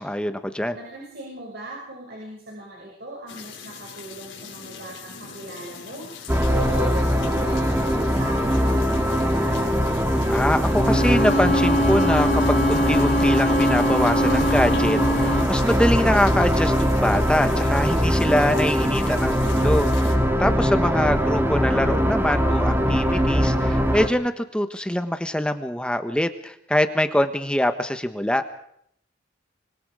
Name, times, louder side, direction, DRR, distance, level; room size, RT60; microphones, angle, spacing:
voice 1, 0.0-0.8 10.3-28.4, left 1 dB, 5° left, 8 dB, 1.2 m, -24 dB
voice 2, 0.7-9.6, right 1 dB, 60° right, -2 dB, 6.6 m, -38 dB
sound 1, 3.3-20.1, left 6 dB, 80° left, 4.4 m, -41 dB
sound 2, 6.3-24.1, equal, 10° right, 1.9 m, -21 dB
Bowed string instrument, 10.7-15.6, left 1 dB, 60° left, 2.9 m, -23 dB
25.5 x 22.5 x 5.0 m, 0.70 s
head